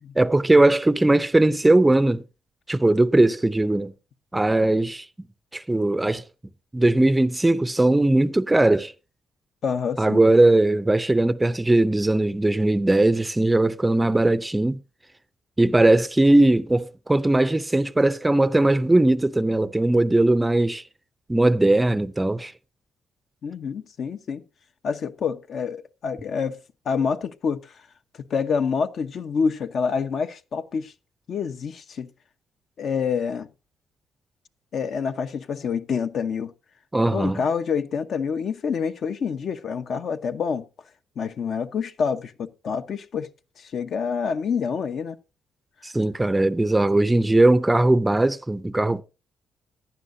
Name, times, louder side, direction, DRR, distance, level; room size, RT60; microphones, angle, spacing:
voice 1, 0.2-2.2 2.7-3.9 4.3-5.1 5.5-6.2 6.7-8.9 10.0-14.8 15.6-20.8 21.3-22.5 36.9-37.4 45.8-49.0, right 2 dB, 15° right, 0.5 m, -19 dB
voice 2, 9.6-10.2 23.4-24.4 24.8-26.6 26.8-27.7 28.2-30.9 31.3-32.1 32.8-33.5 34.7-36.5 37.0-40.7 41.2-43.3 43.6-45.2, left 6 dB, 60° left, 0.9 m, -27 dB
16.0 x 11.0 x 2.7 m
cardioid pair, 90°, 0 cm